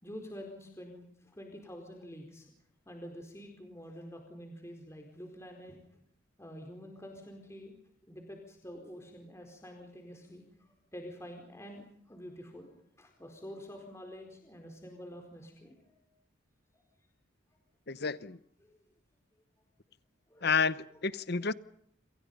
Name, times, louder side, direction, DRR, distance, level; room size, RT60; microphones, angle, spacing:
voice 1, 0.0-2.5 2.9-5.8 6.4-7.7 8.1-16.1 18.6-18.8 20.3-20.5 21.3-21.4, equal, 15° left, 3 dB, 4.5 m, -48 dB
voice 2, 17.9-18.4 20.4-21.5, left 5 dB, 50° left, 16 dB, 0.9 m, -30 dB
29.5 x 27.5 x 5.5 m, 0.70 s
head